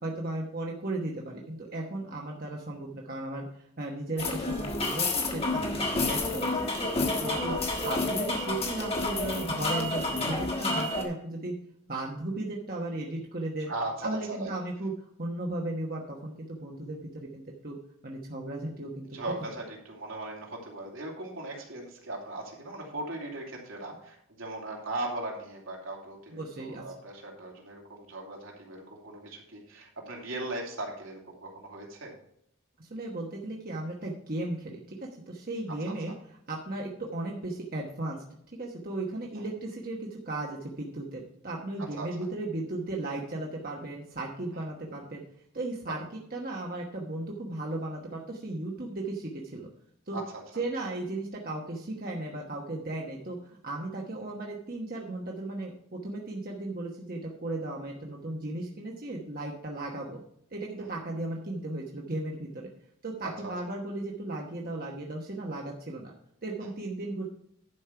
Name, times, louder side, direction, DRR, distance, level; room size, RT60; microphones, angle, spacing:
voice 1, 0.0-6.6 7.2-7.5 7.8-11.5 11.9-13.7 14.0-14.9 15.2-17.8 18.0-19.2 26.3-26.8 32.8-38.2 38.6-45.2 45.5-46.0 46.3-49.7 50.1-50.2 50.6-60.2 60.5-62.7 63.0-66.1 66.4-67.3, right 2 dB, 45° right, -1 dB, 1.1 m, -36 dB
sound 1, 4.2-11.0, left 2 dB, 25° left, 1.6 m, -29 dB
voice 2, 7.2-7.6 13.7-14.5 19.0-32.1 39.3-39.5 41.9-42.1 45.9-46.0 50.1-50.3 60.8-60.9 63.2-63.5, right 2 dB, 75° right, -1 dB, 2.8 m, -38 dB
11.0 x 5.4 x 5.8 m, 0.71 s
head